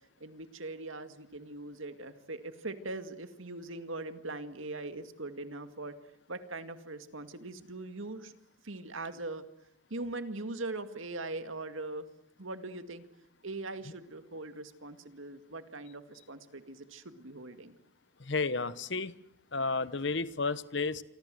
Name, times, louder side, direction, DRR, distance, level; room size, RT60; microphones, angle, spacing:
voice 1, 0.2-5.9 6.3-8.3 8.6-9.4 9.9-12.1 12.4-13.1 13.4-17.7, right 2 dB, 75° right, 9 dB, 2.2 m, -41 dB
voice 2, 18.3-19.1 19.5-21.0, left 4 dB, 60° left, 16 dB, 1.1 m, -32 dB
27.5 x 25.5 x 7.9 m, 0.75 s
head